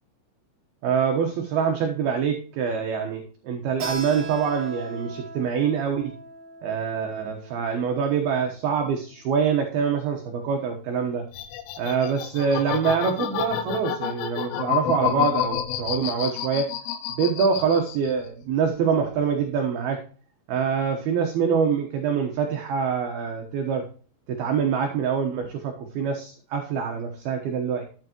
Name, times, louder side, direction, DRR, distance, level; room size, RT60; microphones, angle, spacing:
voice 1, 0.8-6.1 6.6-11.2 11.8-16.7 17.1-20.0 20.5-23.8 24.3-27.8, right 6 dB, 70° right, 3 dB, 2.4 m, -25 dB
Keyboard (musical), 3.8-9.1, right 3 dB, 45° right, 3.0 m, -39 dB
sound 1, 11.3-18.3 18.6-19.4, left 10 dB, 90° left, 3.7 m, -29 dB
11.5 x 8.0 x 3.0 m, 0.40 s
omnidirectional pair, 5.8 m